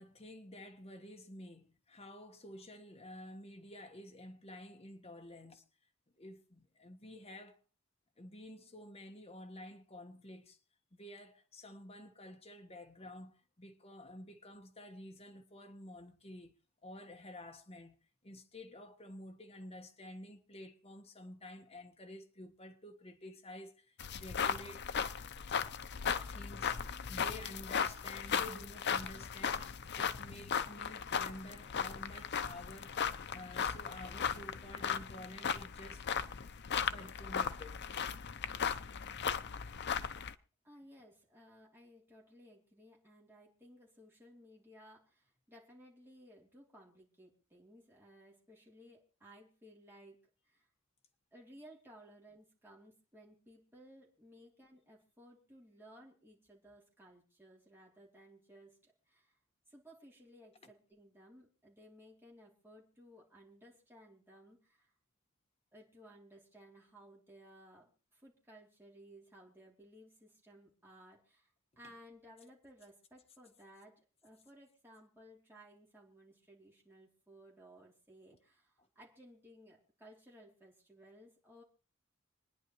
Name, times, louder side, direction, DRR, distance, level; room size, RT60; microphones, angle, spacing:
voice 1, 0.0-5.6 6.2-7.6 8.2-10.6 11.0-16.6 16.8-18.0 18.2-24.8 26.3-26.8 27.1-33.0 33.3-36.0 36.9-37.9 60.6-60.7, left 1 dB, 30° left, 1.4 m, -51 dB
sound 1, 24.0-40.3, left 7 dB, 55° left, 0.6 m, -37 dB
voice 2, 40.6-50.2 50.4-50.7 51.3-59.4 59.7-64.9 65.7-71.5 71.8-81.6, equal, 10° right, 3.1 m, -59 dB
27.0 x 10.0 x 3.1 m
head